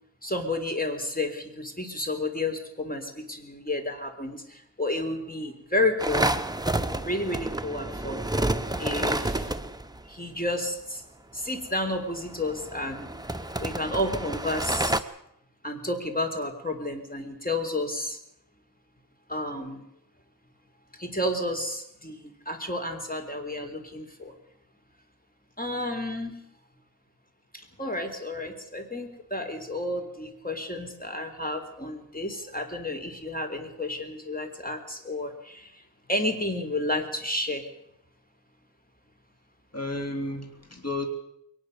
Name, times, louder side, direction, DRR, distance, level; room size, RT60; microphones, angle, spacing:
voice 1, 0.2-4.4 4.8-6.3 7.0-8.3 8.8-9.5 10.1-11.0 11.3-13.1 13.6-15.0 15.6-18.2 19.3-19.8 21.0-24.3 25.6-26.3 27.8-35.6 36.1-37.7, left 1 dB, 20° left, 5 dB, 3.7 m, -31 dB
sound 1, 6.0-10.0 11.9-15.0, right 1 dB, 10° right, 1.0 m, -29 dB
voice 2, 39.7-41.1, left 2 dB, 35° left, 4 dB, 3.7 m, -32 dB
22.0 x 19.0 x 6.8 m, 0.77 s
wide cardioid pair, 60°, 42 cm